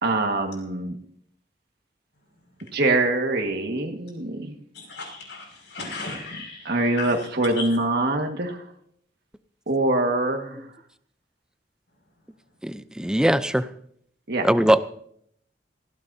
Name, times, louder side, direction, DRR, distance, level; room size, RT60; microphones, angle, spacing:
voice 1, 0.0-1.0 2.7-4.5 6.6-8.6 9.7-10.7 14.3-14.5, right 2 dB, 60° right, 2 dB, 1.7 m, -24 dB
voice 2, 4.7-7.3 7.6-7.7, left 3 dB, 75° left, 1 dB, 5.9 m, -36 dB
voice 3, 12.6-13.7 14.4-14.8, right 1 dB, 5° right, 12 dB, 0.5 m, -20 dB
19.5 x 16.0 x 2.7 m, 0.68 s
head